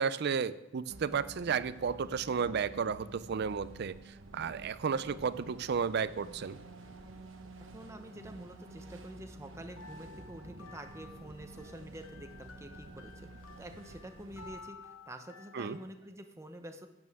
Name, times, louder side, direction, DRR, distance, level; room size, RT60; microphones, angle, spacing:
voice 1, 0.0-6.6 15.5-15.8, right 6 dB, 55° right, 16 dB, 0.4 m, -33 dB
sound 1, 0.9-14.6, right 2 dB, 80° right, 1.1 m, -51 dB
voice 2, 7.6-13.3 13.6-16.9, right 1 dB, 15° right, 6 dB, 0.8 m, -48 dB
sound 2, 9.7-15.9, left 4 dB, 80° left, 1.0 m, -54 dB
12.0 x 8.8 x 3.5 m, 1.1 s
head